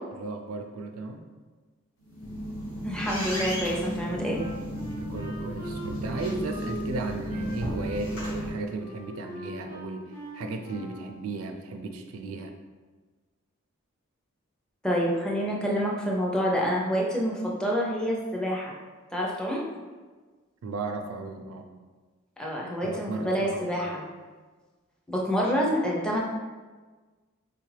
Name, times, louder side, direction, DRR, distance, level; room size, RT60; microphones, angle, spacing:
voice 1, 0.1-1.2 5.0-12.5 20.6-21.7 22.8-24.0, right 3 dB, 80° right, 5 dB, 0.4 m, -35 dB
sound 1, 2.0-8.5, equal, 70° left, 1.3 m, -33 dB
voice 2, 2.8-4.4 14.8-18.7 19.1-19.6 22.4-24.0 25.1-26.2, equal, 5° left, -3 dB, 0.5 m, -27 dB
Wind instrument woodwind instrument, 4.3-11.1, left 1 dB, 90° left, 1.3 m, -43 dB
3.5 x 2.4 x 3.2 m, 1.4 s
head